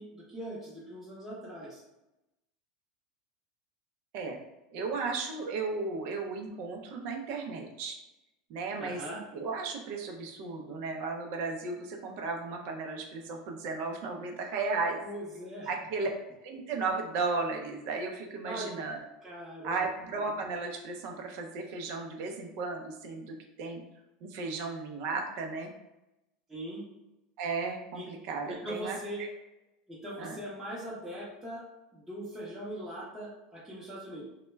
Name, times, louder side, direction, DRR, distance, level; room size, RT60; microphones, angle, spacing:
voice 1, 0.0-1.8 8.8-9.2 15.0-15.7 16.0-16.1 18.4-18.7 19.2-19.8 26.5-26.8 27.9-28.0 28.5-29.2 29.9-31.6 31.9-34.2, right 1 dB, 5° right, -8 dB, 0.7 m, -41 dB
voice 2, 4.7-8.0 8.5-9.0 9.3-15.0 15.7-16.1 16.4-19.0 19.6-23.8 24.2-25.7 27.4-29.3 30.2-30.4, right 4 dB, 60° right, 2 dB, 0.5 m, -35 dB
2.2 x 2.1 x 3.1 m, 0.94 s
supercardioid pair, 115°, 4 cm